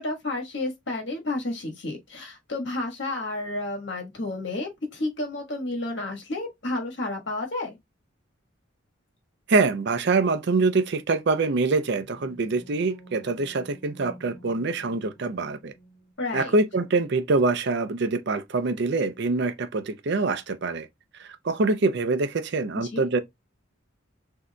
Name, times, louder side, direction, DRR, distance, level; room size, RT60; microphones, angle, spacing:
voice 1, 0.0-7.8 16.2-16.5 22.8-23.0, left 2 dB, 60° left, 1.4 m, -31 dB
voice 2, 9.5-15.7 16.3-20.9 21.2-23.2, right 3 dB, 55° right, 0.5 m, -25 dB
sound 1, 11.7-16.1, right 1 dB, 40° left, 1.5 m, -50 dB
6.2 x 2.7 x 2.2 m
head